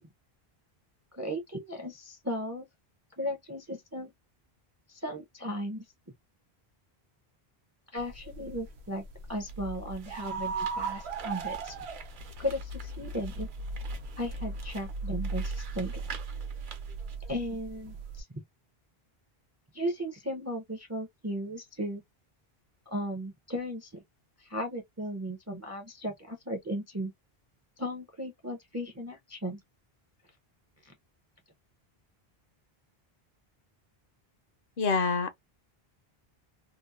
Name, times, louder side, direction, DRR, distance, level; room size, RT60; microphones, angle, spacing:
voice 1, 1.1-2.7 3.2-4.1 4.9-5.8 7.9-9.0 9.3-11.8 12.4-13.5 14.2-16.0 17.3-18.4 19.7-22.0 22.9-24.0 24.4-27.1 27.8-29.6 30.8-30.9, equal, 25° right, 0.4 m, -36 dB
sound 1, 8.0-18.2, right 3 dB, 85° right, 0.9 m, -38 dB
sound 2, 9.4-17.2, right 5 dB, 60° right, 0.7 m, -49 dB
voice 2, 34.8-35.3, left 4 dB, 65° left, 0.7 m, -26 dB
2.8 x 2.0 x 2.3 m
omnidirectional pair, 1.0 m